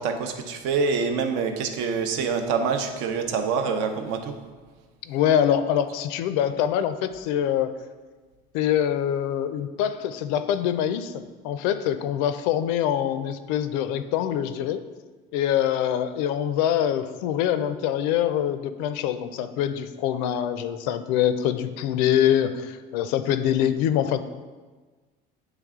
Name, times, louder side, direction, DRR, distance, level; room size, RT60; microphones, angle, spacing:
voice 1, 0.0-4.3, right 5 dB, 70° right, 6 dB, 0.7 m, -26 dB
voice 2, 5.1-7.7 8.5-14.8 15.3-24.2, left 10 dB, 85° left, 11 dB, 0.4 m, -24 dB
8.4 x 3.3 x 3.6 m, 1.4 s
cardioid pair, 160°, 20 cm